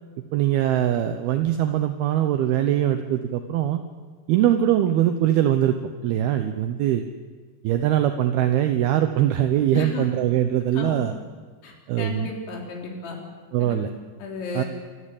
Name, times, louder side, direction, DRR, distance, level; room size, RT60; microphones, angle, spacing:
voice 1, 0.3-3.8 4.3-5.8 6.0-7.0 7.6-11.1 11.9-12.3 13.5-13.9 14.5-14.6, right 11 dB, 75° right, 8 dB, 2.5 m, -22 dB
voice 2, 9.7-10.1 10.7-11.1 11.6-13.2 13.6-13.9 14.2-14.7, left 4 dB, 85° left, 0 dB, 5.9 m, -34 dB
26.5 x 15.0 x 8.4 m, 1.5 s
omnidirectional pair, 5.2 m